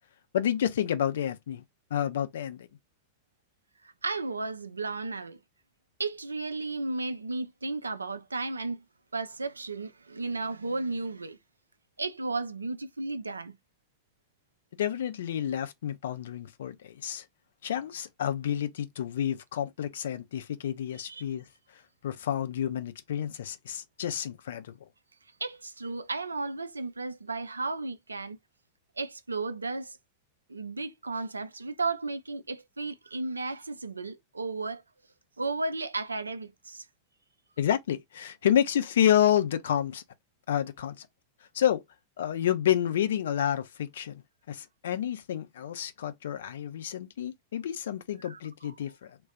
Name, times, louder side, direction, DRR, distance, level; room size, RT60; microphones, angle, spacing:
voice 1, 0.3-1.6 1.9-2.7 14.8-17.2 17.6-21.4 22.0-24.8 37.6-40.0 40.5-41.1 41.5-41.8 42.2-44.2 44.5-49.2, left 10 dB, 60° left, 0.5 m, -29 dB
voice 2, 3.8-5.4 6.0-8.8 9.1-11.4 12.0-13.6 21.0-21.2 25.4-28.4 29.0-30.0 30.5-34.8 35.4-36.9 48.2-48.7, right 3 dB, 80° right, 0.5 m, -34 dB
2.4 x 2.2 x 4.0 m
figure-of-eight pair, 90°, 0 cm